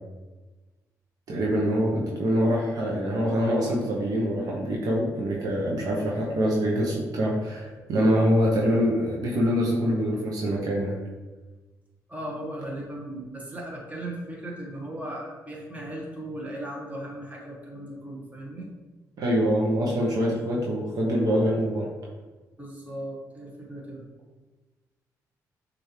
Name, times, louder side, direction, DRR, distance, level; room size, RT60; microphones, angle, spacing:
voice 1, 1.3-11.0 19.2-21.9, equal, 60° right, -3 dB, 0.9 m, -24 dB
voice 2, 12.1-18.7 22.6-24.0, right 1 dB, 20° right, -3 dB, 1.4 m, -37 dB
6.3 x 2.7 x 3.2 m, 1.2 s
cardioid pair, 80°, 7 cm